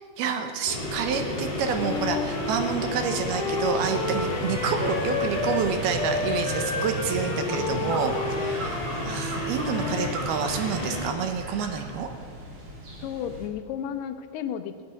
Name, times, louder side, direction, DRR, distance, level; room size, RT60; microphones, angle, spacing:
voice 1, 0.2-12.1, right 6 dB, 75° right, 6 dB, 2.6 m, -28 dB
sound 1, 0.7-11.1, left 1 dB, 25° left, 2.8 m, -32 dB
sound 2, 0.7-13.5, right 1 dB, 35° right, 3.1 m, -40 dB
Wind instrument woodwind instrument, 1.7-5.6 5.9-10.2, left 4 dB, 55° left, 3.1 m, -31 dB
voice 2, 13.0-14.8, left 9 dB, 75° left, 8 dB, 2.6 m, -33 dB
17.0 x 8.7 x 9.4 m, 2.1 s
omnidirectional pair, 5.1 m